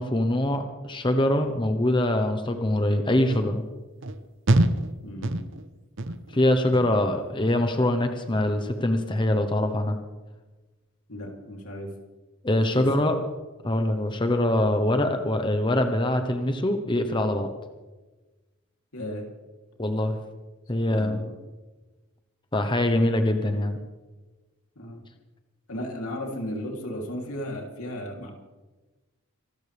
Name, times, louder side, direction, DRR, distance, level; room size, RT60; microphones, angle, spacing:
voice 1, 0.0-3.6 6.3-10.0 12.4-13.2 13.6-17.5 19.8-20.2 20.7-21.2 22.5-23.8, left 1 dB, 20° left, 6 dB, 1.0 m, -23 dB
sound 1, 3.3-3.5 4.0-4.2 4.5-4.9 5.2-5.7 6.0-6.4 6.7-7.1 7.5-7.8 8.2-8.4, right 1 dB, 60° right, 0.9 m, -25 dB
voice 2, 5.0-5.4 11.1-11.9 12.7-12.9 18.9-19.3 20.7-21.3 24.7-25.0 25.7-28.3, left 1 dB, 85° left, 1 dB, 3.3 m, -35 dB
26.0 x 13.5 x 3.5 m, 1.2 s
head